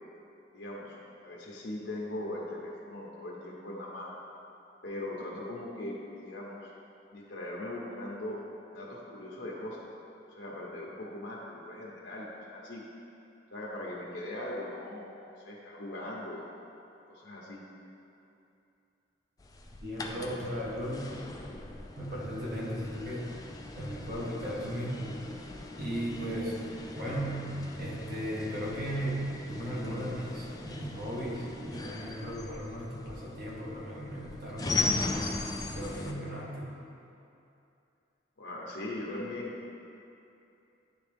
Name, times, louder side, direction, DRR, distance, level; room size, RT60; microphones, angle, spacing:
voice 1, 0.5-4.2 4.8-6.7 7.1-8.4 8.7-9.8 10.3-12.8 13.5-15.1 15.4-16.4 17.1-17.6 38.4-39.5, left 1 dB, 75° left, -4 dB, 1.0 m, -40 dB
sound 1, 19.4-36.1, left 3 dB, 20° left, 0.3 m, -39 dB
voice 2, 19.8-21.1 22.0-23.3 23.7-25.2 25.8-26.6 27.0-35.3 35.7-36.7, equal, 55° right, -5 dB, 1.4 m, -36 dB
10.5 x 3.5 x 3.4 m, 2.7 s
head